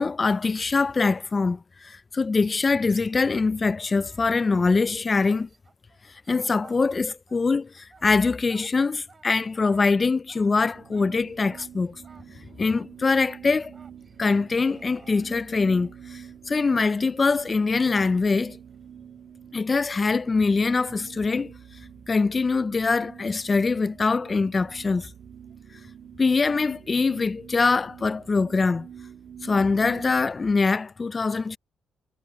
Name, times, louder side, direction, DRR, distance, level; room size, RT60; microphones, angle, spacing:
voice 1, 0.0-5.5 6.3-12.0 12.6-13.7 14.2-18.6 19.5-21.5 22.1-25.1 26.2-28.9 29.4-31.6, left 4 dB, 25° left, 0.3 m, -23 dB
sound 1, 3.5-4.7 5.4-7.4 7.7-16.0 18.7-18.8, right 4 dB, 30° right, 3.2 m, -54 dB
sound 2, 10.7-30.3, right 8 dB, 60° right, 2.7 m, -46 dB
cardioid pair, 140°, 0 cm